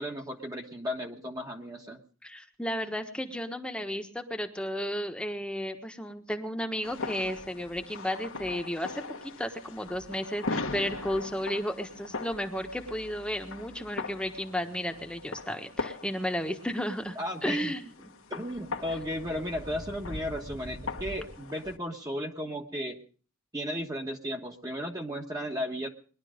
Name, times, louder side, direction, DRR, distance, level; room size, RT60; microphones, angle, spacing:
voice 1, 0.0-2.0 17.2-17.8 18.3-23.0 23.5-25.9, equal, 15° right, 1 dB, 1.3 m, -35 dB
voice 2, 2.2-9.0 9.4-18.1, equal, 5° left, 5 dB, 1.3 m, -33 dB
sound 1, 6.8-21.8, left 3 dB, 65° left, 1.4 m, -40 dB
21.0 x 11.5 x 5.1 m, 0.43 s
head